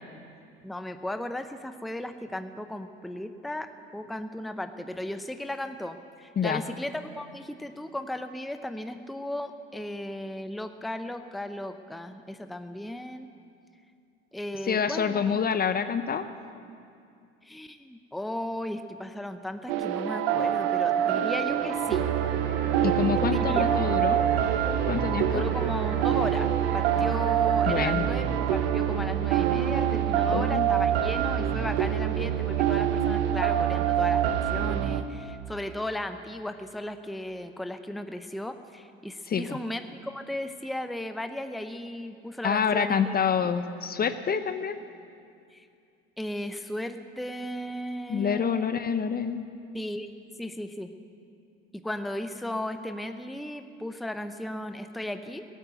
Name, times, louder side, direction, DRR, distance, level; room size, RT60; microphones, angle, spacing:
voice 1, 0.6-13.3 14.3-15.4 17.4-22.0 23.2-23.9 25.3-43.1 45.5-45.7 46.2-48.7 49.7-50.9 51.7-55.5, left 1 dB, ahead, 9 dB, 0.7 m, -36 dB
voice 2, 14.6-16.3 22.8-24.2 24.9-25.5 27.7-28.1 30.3-30.7 39.3-39.6 42.4-44.8 48.1-49.5, left 7 dB, 30° left, 11 dB, 0.8 m, -27 dB
sound 1, 19.7-35.0, right 10 dB, 80° right, 0.9 m, -25 dB
sound 2, 21.5-26.8, right 3 dB, 35° right, 2.2 m, -37 dB
17.0 x 9.2 x 7.9 m, 2.4 s
hypercardioid pair, 70°, 29 cm